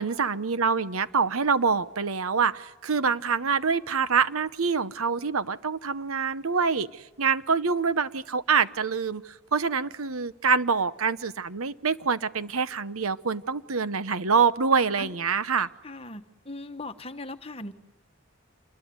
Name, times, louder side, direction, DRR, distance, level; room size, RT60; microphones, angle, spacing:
voice 1, 0.0-15.7, right 5 dB, 85° right, 14 dB, 1.0 m, -25 dB
voice 2, 15.8-17.7, left 2 dB, 25° left, 8 dB, 1.3 m, -39 dB
27.5 x 21.5 x 9.6 m, 1.0 s
head